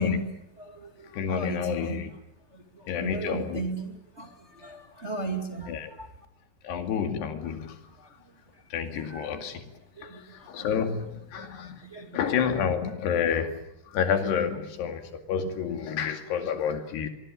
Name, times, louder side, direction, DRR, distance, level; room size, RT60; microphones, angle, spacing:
voice 1, 0.0-2.1 2.5-6.1 8.0-8.1 8.9-9.4 10.0-11.5 11.8-12.2, right 2 dB, 20° right, 4 dB, 2.0 m, -37 dB
voice 2, 1.1-2.1 2.9-3.7 5.7-5.9 6.6-7.8 8.7-9.6 10.5-11.8 12.1-13.6 13.9-17.1, left 7 dB, 80° left, 6 dB, 4.4 m, -29 dB
24.5 x 23.0 x 8.7 m, 0.80 s
omnidirectional pair, 4.7 m